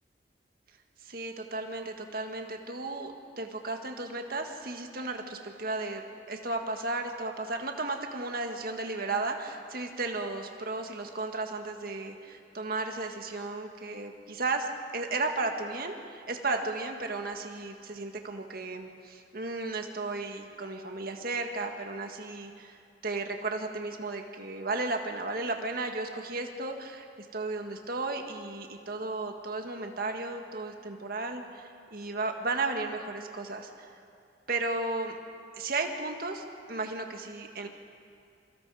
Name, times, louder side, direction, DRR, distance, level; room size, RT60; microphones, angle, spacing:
voice 1, 1.0-14.7 14.9-33.7 34.5-35.2 35.6-37.7, right 3 dB, 55° right, 4 dB, 1.7 m, -34 dB
28.0 x 23.5 x 4.9 m, 2.4 s
head